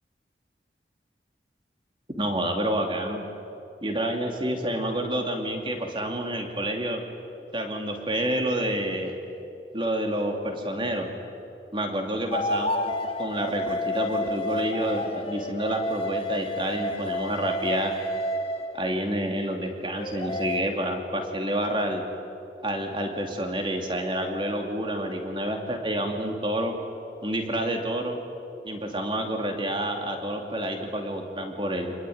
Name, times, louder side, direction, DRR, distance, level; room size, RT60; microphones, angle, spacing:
voice 1, 2.2-3.2 3.8-7.0 7.5-9.1 9.7-11.1 11.7-12.9 13.2-17.9 18.7-22.0 22.6-26.8 27.2-28.2 28.6-31.9, right 1 dB, 30° right, 3 dB, 2.9 m, -28 dB
sound 1, 12.3-19.0 19.9-20.6, left 1 dB, 35° left, 1.4 m, -30 dB
27.5 x 21.5 x 9.5 m, 2.8 s
head